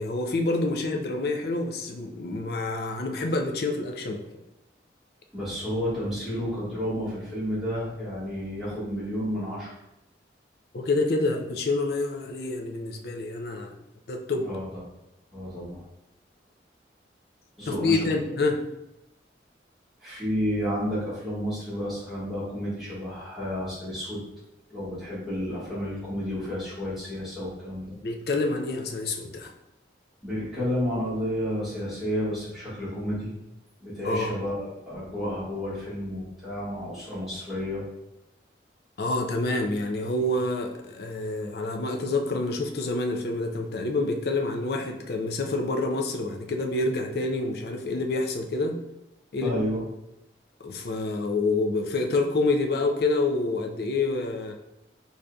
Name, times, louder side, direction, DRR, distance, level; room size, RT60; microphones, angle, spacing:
voice 1, 0.0-4.3 10.7-13.7 14.1-14.5 17.7-18.6 28.0-29.5 34.0-34.3 39.0-48.8 49.3-49.6 50.6-54.5, left 2 dB, 55° left, 4 dB, 0.4 m, -27 dB
voice 2, 5.3-9.8 14.4-14.7 15.3-15.8 17.6-18.3 20.0-24.2 24.7-27.9 30.2-33.3 33.8-37.8 49.4-49.8, equal, ahead, -11 dB, 1.4 m, -31 dB
4.9 x 2.7 x 2.3 m, 0.88 s
head